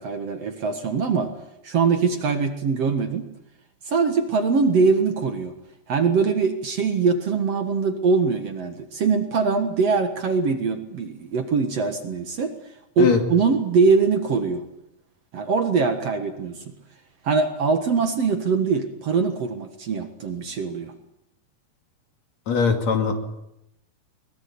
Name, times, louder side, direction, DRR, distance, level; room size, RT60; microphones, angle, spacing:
voice 1, 0.0-1.3 1.6-3.3 3.9-5.5 5.9-12.5 13.0-14.6 15.3-16.7 17.2-20.9, right 5 dB, 55° right, 6 dB, 2.3 m, -22 dB
voice 2, 22.5-23.1, left 5 dB, 55° left, 5 dB, 3.5 m, -20 dB
23.0 x 21.0 x 8.5 m, 0.83 s
omnidirectional pair, 3.9 m